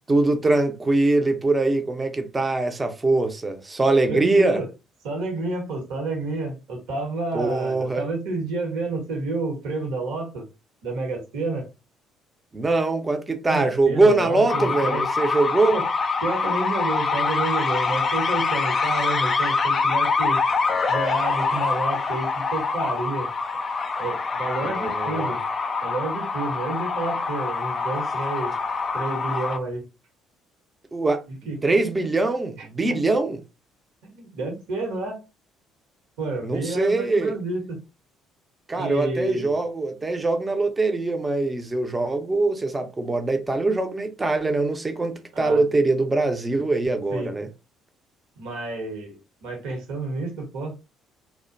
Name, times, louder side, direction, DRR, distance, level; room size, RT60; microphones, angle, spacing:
voice 1, 0.1-4.6 7.3-8.0 12.5-15.8 24.7-25.3 30.9-31.2 31.6-33.4 36.4-37.3 38.7-47.5, right 2 dB, 25° right, 0.6 m, -22 dB
voice 2, 4.1-4.7 5.0-10.5 10.8-11.7 13.5-15.0 15.7-15.9 16.2-20.4 20.9-23.3 24.0-25.4 25.8-28.5 28.9-29.8 31.4-31.6 32.9-33.0 34.0-35.2 36.2-37.8 38.7-39.6 45.3-45.6 47.1-47.3 48.4-50.7, right 2 dB, 70° right, 1.0 m, -30 dB
sound 1, 14.5-29.6, left 4 dB, 40° left, 0.4 m, -25 dB
2.4 x 2.1 x 2.5 m
hypercardioid pair, 50°, 0 cm